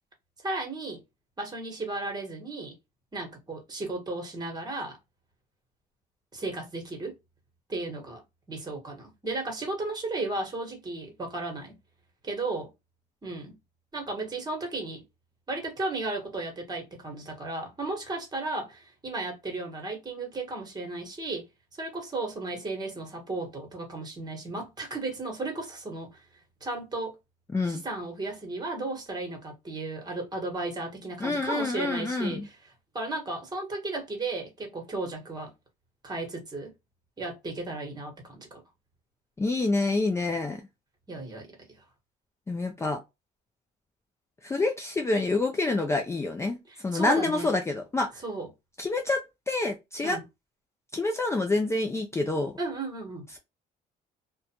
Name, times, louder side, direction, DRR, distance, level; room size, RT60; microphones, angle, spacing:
voice 1, 0.4-1.0 1.4-2.7 3.1-5.0 6.3-7.2 7.7-8.2 8.5-11.7 12.2-12.7 13.2-13.6 13.9-15.0 15.5-21.5 21.8-26.2 26.6-27.2 27.7-35.5 36.0-36.7 37.2-38.6 41.1-41.8 46.7-47.5 48.2-48.5 50.0-50.2 52.6-53.3, right 2 dB, 25° right, 1.3 m, -34 dB
voice 2, 27.5-27.8 31.2-32.5 39.4-40.6 42.5-43.0 44.4-46.6 46.8-48.1 48.8-50.2 50.9-52.5, left 2 dB, 15° left, 0.4 m, -27 dB
2.4 x 2.3 x 2.8 m
cardioid pair, 110°, 17 cm